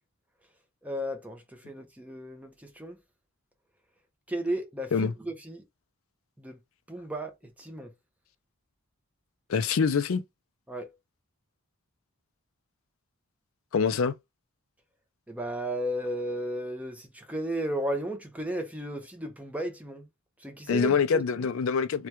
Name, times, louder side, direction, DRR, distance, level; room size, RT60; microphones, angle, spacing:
voice 1, 0.8-3.0 4.3-5.6 6.4-6.6 6.9-7.9 10.7-10.9 15.3-20.1 20.4-21.2, right 1 dB, 5° right, 0.7 m, -34 dB
voice 2, 9.5-10.2 13.7-14.1 20.7-22.1, left 5 dB, 65° left, 0.4 m, -25 dB
3.3 x 2.3 x 2.9 m
head